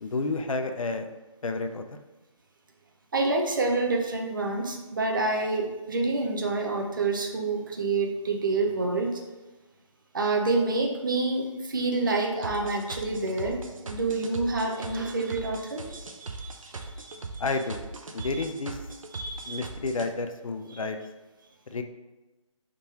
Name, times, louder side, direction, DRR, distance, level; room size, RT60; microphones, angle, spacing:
voice 1, 0.0-1.1 1.4-1.8 17.4-17.9 18.1-18.8 19.5-21.0 21.7-21.8, left 3 dB, 80° left, 6 dB, 0.6 m, -30 dB
voice 2, 3.1-9.2 10.1-17.2 18.2-18.4 19.1-19.6 20.7-20.8, right 3 dB, 40° right, 1 dB, 0.7 m, -28 dB
sound 1, 12.4-20.1, right 3 dB, 80° right, 0.6 m, -39 dB
4.7 x 3.7 x 2.9 m, 1.2 s
hypercardioid pair, 175°, 17 cm